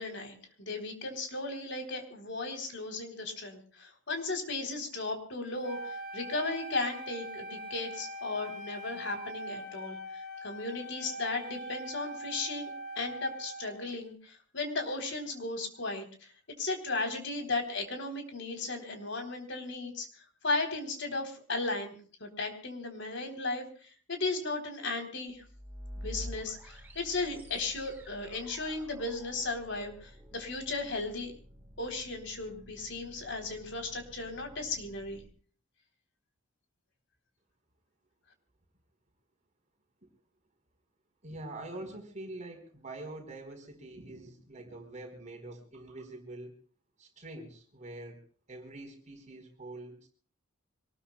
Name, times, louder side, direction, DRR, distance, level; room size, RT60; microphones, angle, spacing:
voice 1, 0.0-16.3 16.6-20.1 20.4-21.9 22.2-25.4 26.0-31.3 31.8-35.2, left 3 dB, 60° left, 5 dB, 3.8 m, -36 dB
Wind instrument woodwind instrument, 5.6-13.9, equal, 85° left, 5.3 m, -42 dB
sound 1, 25.3-35.3, equal, 10° right, 4.2 m, -49 dB
voice 2, 41.2-46.5 47.0-50.1, right 2 dB, 35° right, 4 dB, 4.4 m, -45 dB
25.5 x 19.5 x 2.3 m, 0.43 s
head